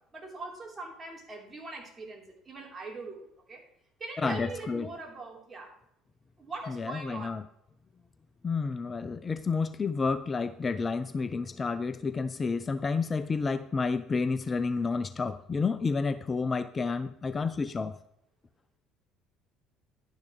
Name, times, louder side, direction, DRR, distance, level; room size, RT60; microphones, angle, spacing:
voice 1, 0.1-3.6 4.0-5.7 6.4-7.4, right 3 dB, 30° right, 3.8 m, -41 dB
voice 2, 4.2-4.9 6.7-7.4 8.4-17.9, left 4 dB, 30° left, 0.5 m, -30 dB
11.0 x 10.5 x 3.3 m
hypercardioid pair, 60°, 0 cm